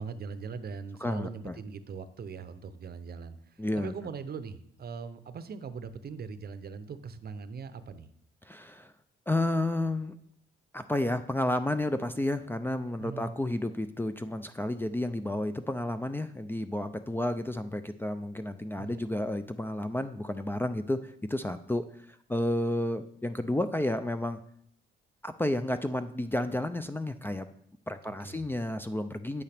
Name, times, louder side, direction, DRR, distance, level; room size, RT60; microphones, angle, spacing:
voice 1, 0.0-8.1 13.0-13.3 18.8-19.0 28.2-28.4, right 5 dB, 50° right, 12 dB, 0.7 m, -41 dB
voice 2, 1.0-1.6 3.6-3.9 8.4-8.9 9.3-10.1 10.7-21.8 22.3-24.4 25.2-27.5 27.9-29.4, left 1 dB, 10° left, 9 dB, 0.4 m, -31 dB
9.2 x 8.3 x 3.4 m, 0.68 s
cardioid pair, 85°, 21 cm